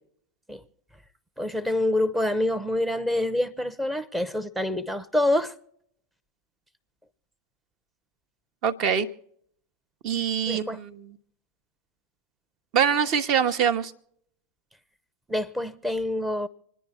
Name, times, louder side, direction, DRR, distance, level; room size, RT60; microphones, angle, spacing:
voice 1, 1.4-5.5 10.4-10.8 15.3-16.5, left 1 dB, 5° right, 0.7 m, -26 dB
voice 2, 8.6-9.1 10.0-11.1 12.7-13.9, right 7 dB, 40° right, 1.0 m, -24 dB
27.0 x 10.0 x 4.2 m
figure-of-eight pair, 90°, 0 cm